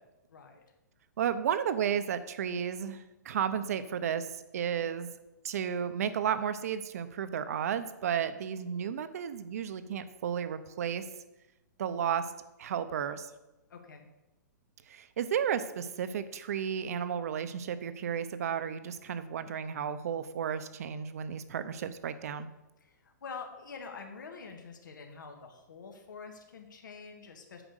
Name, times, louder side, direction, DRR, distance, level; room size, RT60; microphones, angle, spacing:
voice 1, 0.3-0.6 4.8-4.9 13.7-14.1 22.8-27.6, left 5 dB, 85° left, 4 dB, 1.6 m, -46 dB
voice 2, 1.2-4.3 4.5-5.1 5.4-11.1 11.8-12.3 12.6-13.3 14.9-22.5, right 8 dB, 55° right, 12 dB, 0.7 m, -33 dB
8.9 x 5.1 x 6.4 m, 1.0 s
hypercardioid pair, 165°, 10 cm